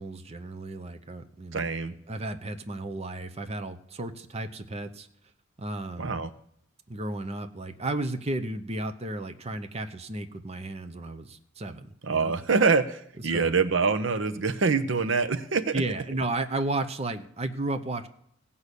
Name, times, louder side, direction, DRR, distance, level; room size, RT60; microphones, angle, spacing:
voice 1, 0.0-1.7 2.1-5.1 5.6-6.2 6.9-12.3 13.3-13.5 15.7-18.1, right 2 dB, 35° right, 9 dB, 0.8 m, -33 dB
voice 2, 1.5-1.9 6.0-6.3 12.0-15.8, right 4 dB, 70° right, 10 dB, 0.8 m, -25 dB
16.5 x 5.6 x 8.2 m, 0.70 s
head